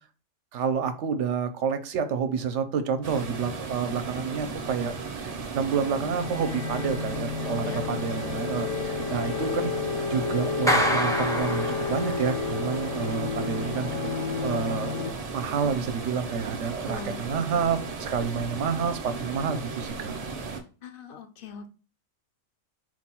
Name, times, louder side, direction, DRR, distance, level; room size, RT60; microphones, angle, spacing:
voice 1, 0.5-4.9 5.2-9.7 10.1-14.9 15.3-20.2, right 6 dB, 70° right, 9 dB, 0.9 m, -29 dB
sound 1, 3.0-20.6, right 4 dB, 45° right, 0.5 m, -36 dB
sound 2, 5.5-15.1, left 5 dB, 80° left, 1.0 m, -31 dB
voice 2, 7.6-8.1 16.8-17.2 20.8-21.7, left 5 dB, 55° left, 8 dB, 0.6 m, -40 dB
Clapping, 10.7-12.4, equal, 5° left, 0.5 m, -26 dB
4.5 x 2.2 x 4.2 m, 0.36 s
omnidirectional pair, 1.3 m